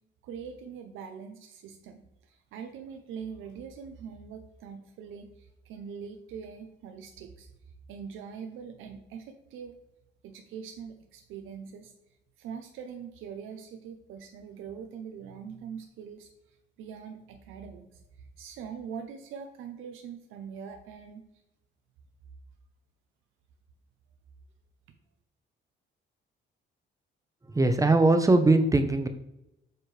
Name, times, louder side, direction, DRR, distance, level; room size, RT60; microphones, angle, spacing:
voice 1, 0.2-7.5 7.9-9.8 10.2-11.9 12.4-21.2, right 7 dB, 90° right, 5 dB, 0.7 m, -43 dB
voice 2, 27.5-29.1, right 2 dB, 15° right, 8 dB, 0.7 m, -21 dB
7.7 x 4.4 x 3.3 m, 0.88 s
cardioid pair, 90°, 20 cm